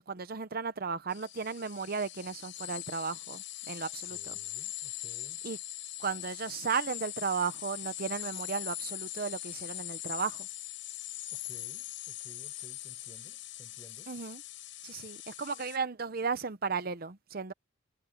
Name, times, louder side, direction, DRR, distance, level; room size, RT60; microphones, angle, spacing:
voice 1, 0.0-4.4 5.4-5.6 6.0-10.5 14.1-14.4 14.8-17.5, right 5 dB, 50° right, 0.7 m, -35 dB
sound 1, 1.1-15.8, left 14 dB, 70° left, 7.1 m, -41 dB
voice 2, 4.1-5.4 11.3-14.2, equal, 20° left, 5.8 m, -56 dB
head